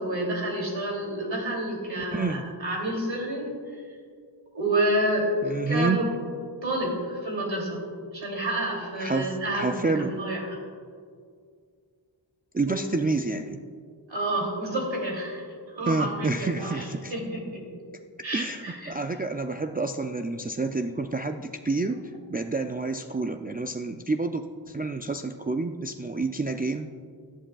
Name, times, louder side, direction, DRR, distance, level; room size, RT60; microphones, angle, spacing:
voice 1, 0.0-3.5 4.5-6.0 6.6-7.8 8.1-10.6 12.7-12.8 14.1-15.4 15.8-16.8 17.1-17.6 18.2-18.9, right 1 dB, 75° right, -2 dB, 2.9 m, -29 dB
voice 2, 2.0-2.4 5.4-6.1 9.0-10.2 12.5-13.6 15.8-17.1 18.3-22.0 22.3-26.9, right 3 dB, 20° right, 5 dB, 0.4 m, -29 dB
17.5 x 11.0 x 2.3 m, 2.2 s
wide cardioid pair, 60°, 46 cm